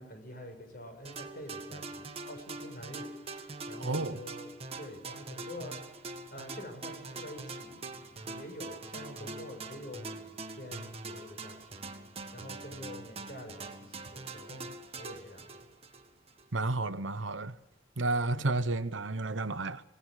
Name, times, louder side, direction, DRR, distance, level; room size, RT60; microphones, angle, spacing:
voice 1, 0.0-5.8 6.3-11.8 12.3-15.7, left 1 dB, 50° left, 6.5 m, -47 dB
sound 1, 1.0-16.5, right 3 dB, 30° right, 1.7 m, -43 dB
voice 2, 3.8-4.2 16.5-17.6 18.0-19.8, right 2 dB, 80° right, 1.1 m, -31 dB
26.5 x 18.5 x 6.5 m
head